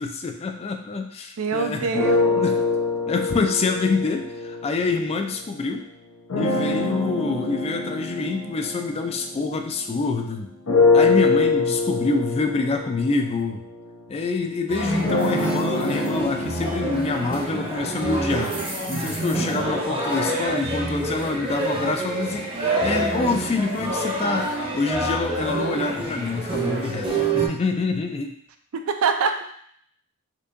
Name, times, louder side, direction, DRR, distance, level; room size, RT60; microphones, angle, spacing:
voice 1, 0.0-1.9 2.4-2.6 3.1-5.9 6.4-10.5 10.9-13.6 14.1-28.3, left 3 dB, 30° left, 4 dB, 0.3 m, -26 dB
voice 2, 1.4-2.4 28.7-29.5, right 5 dB, 65° right, 7 dB, 0.4 m, -24 dB
sound 1, 1.9-5.5 6.3-10.1 10.7-18.6, left 3 dB, 75° left, 0.7 m, -25 dB
sound 2, 14.7-27.5, right 2 dB, 25° right, 0.7 m, -27 dB
4.4 x 2.7 x 2.5 m, 0.65 s
head